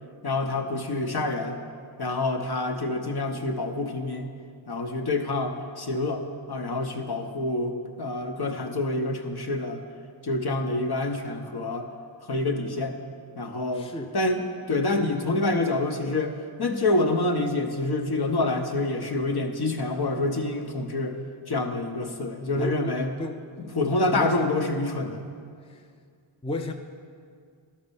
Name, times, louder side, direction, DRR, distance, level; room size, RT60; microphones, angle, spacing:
voice 1, 0.2-1.6 2.0-4.3 4.7-9.8 10.2-11.9 12.3-13.0 13.4-13.9 14.1-16.3 16.6-21.2 21.5-23.1 23.8-25.3, left 2 dB, 55° left, 4 dB, 1.0 m, -27 dB
voice 2, 13.7-14.2 22.6-23.4 24.0-25.1 25.7-25.9 26.4-26.7, left 1 dB, 10° left, 4 dB, 0.5 m, -34 dB
12.0 x 4.3 x 7.0 m, 2.2 s
cardioid pair, 55°, 48 cm